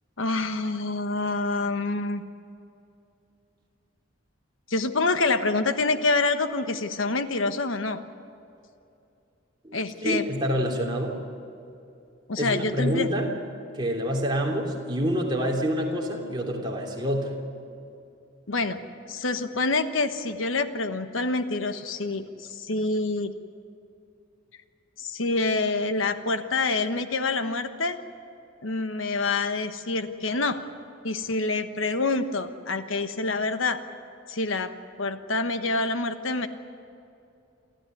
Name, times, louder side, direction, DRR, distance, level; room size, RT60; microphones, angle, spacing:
voice 1, 0.2-2.2 4.7-8.0 9.7-10.2 12.3-13.1 18.5-18.8 19.1-23.3 25.0-28.0 28.6-30.6 31.0-33.8 34.3-34.7 35.0-36.5, left 3 dB, 85° left, 9 dB, 1.2 m, -26 dB
voice 2, 9.6-11.2 12.4-13.3 13.7-17.3, equal, 25° right, -2 dB, 3.3 m, -27 dB
28.5 x 13.5 x 9.4 m, 2.6 s
head